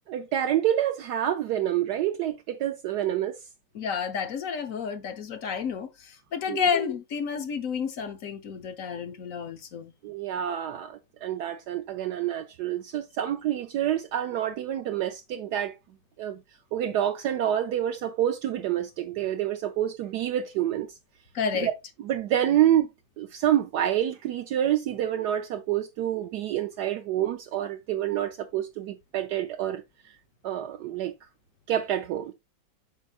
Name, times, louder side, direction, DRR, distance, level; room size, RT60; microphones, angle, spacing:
voice 1, 0.1-3.4 6.5-6.7 10.0-15.8 16.2-16.4 16.7-21.0 21.5-21.7 22.0-22.9 23.2-30.1 30.4-31.1 31.7-32.3, right 11 dB, 70° right, 1.0 m, -27 dB
voice 2, 3.7-9.9 21.3-21.7, left 6 dB, 60° left, 1.0 m, -30 dB
7.1 x 5.6 x 2.4 m
omnidirectional pair, 2.0 m